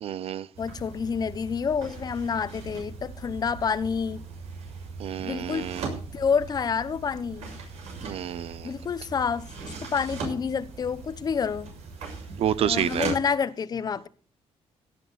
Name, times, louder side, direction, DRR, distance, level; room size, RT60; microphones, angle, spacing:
voice 1, 0.0-0.5 5.0-5.9 8.0-8.7 12.4-13.1, right 10 dB, 60° right, 0.6 m, -29 dB
sound 1, 0.5-13.2, right 4 dB, 85° right, 6.7 m, -39 dB
voice 2, 0.6-4.2 5.2-5.7 6.1-7.5 8.6-11.7 12.6-14.1, left 6 dB, 35° left, 0.8 m, -28 dB
17.0 x 12.5 x 4.1 m
cardioid pair, 140°, 11 cm